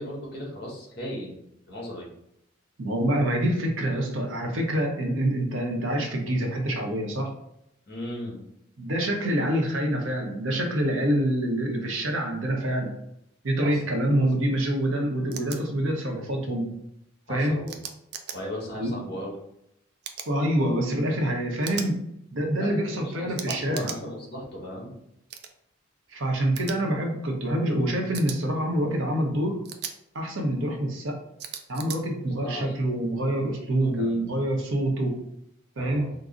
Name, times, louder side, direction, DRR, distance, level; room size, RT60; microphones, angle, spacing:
voice 1, 0.0-1.4 1.7-2.1 7.9-8.4 13.6-13.8 17.3-17.8 18.3-19.3 22.6-25.0 32.4-32.8 33.8-34.4 35.8-36.1, equal, 50° left, -3 dB, 1.2 m, -36 dB
voice 2, 2.8-7.3 8.8-12.9 13.4-16.7 17.3-17.6 18.8-18.9 20.3-22.0 22.3-23.9 26.1-29.6 30.1-31.2 31.7-35.1 35.8-36.1, right 1 dB, 80° right, 1 dB, 0.8 m, -26 dB
sound 1, 15.3-15.6 17.7-18.4 20.0-20.3 21.6-21.9 23.4-24.0 25.3-25.5 26.6-26.8 28.1-28.4 29.6-29.9 31.4-32.0, right 8 dB, 55° right, 0.4 m, -37 dB
3.7 x 2.0 x 3.7 m, 0.79 s
head